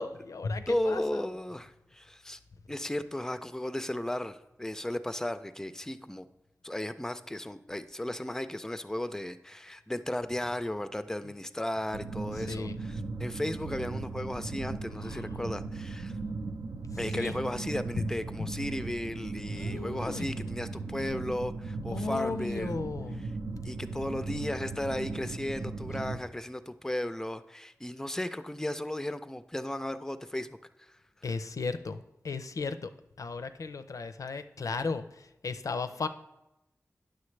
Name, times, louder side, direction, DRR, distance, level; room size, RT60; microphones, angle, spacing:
voice 1, 0.0-1.2 11.2-11.3 12.5-12.7 15.1-15.2 17.1-17.3 18.0-18.1 19.6-20.3 21.9-23.2 31.2-32.9 33.2-36.1, left 4 dB, 80° left, 11 dB, 0.4 m, -35 dB
voice 2, 0.7-2.4 2.7-6.3 6.6-16.2 17.0-22.8 23.2-23.3 23.6-30.9, left 1 dB, 10° left, 11 dB, 0.4 m, -35 dB
sound 1, 11.9-26.2, right 3 dB, 85° right, 0.6 m, -37 dB
9.6 x 6.5 x 3.2 m, 0.90 s
wide cardioid pair, 60°, 6 cm